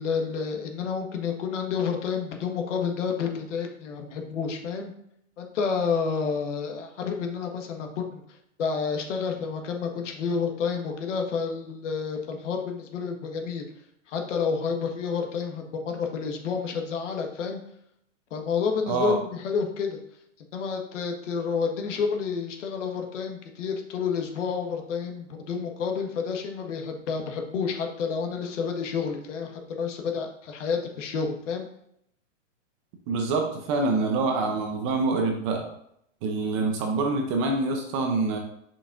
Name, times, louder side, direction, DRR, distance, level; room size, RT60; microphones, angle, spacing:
voice 1, 0.0-4.9 5.4-8.2 8.6-13.6 14.1-17.6 18.3-20.0 20.5-31.7, left 5 dB, 65° left, 3 dB, 1.5 m, -29 dB
voice 2, 18.9-19.2 33.1-35.6 36.2-38.4, right 3 dB, 25° right, 3 dB, 0.6 m, -26 dB
6.8 x 5.7 x 2.5 m, 0.72 s
hypercardioid pair, 155°, 39 cm